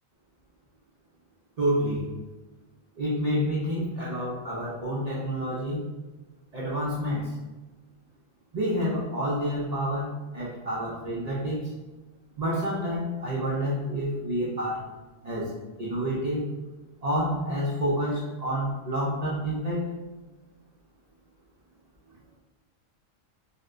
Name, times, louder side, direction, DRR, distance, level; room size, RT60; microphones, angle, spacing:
voice 1, 1.6-2.1 3.0-5.9 6.5-7.3 8.5-11.7 12.4-14.9 15.2-15.5 15.8-16.5 17.0-19.8, equal, 65° right, -6 dB, 0.4 m, -28 dB
4.0 x 2.1 x 2.4 m, 1.2 s
omnidirectional pair, 1.4 m